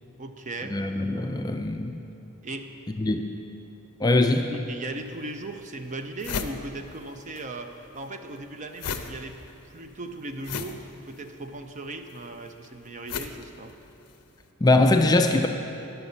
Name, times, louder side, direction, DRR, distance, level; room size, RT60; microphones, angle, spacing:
voice 1, 0.2-0.8 2.4-2.8 4.5-9.4 9.7-13.7, right 2 dB, 35° right, 6 dB, 0.5 m, -37 dB
voice 2, 0.7-1.9 3.0-3.3 4.0-4.5 14.6-15.5, left 2 dB, 20° left, 5 dB, 0.3 m, -22 dB
sound 1, 5.0-5.1 5.6-5.7 5.9-7.5 7.7-14.3, left 6 dB, 85° left, 0.5 m, -37 dB
10.5 x 6.8 x 5.5 m, 2.9 s
head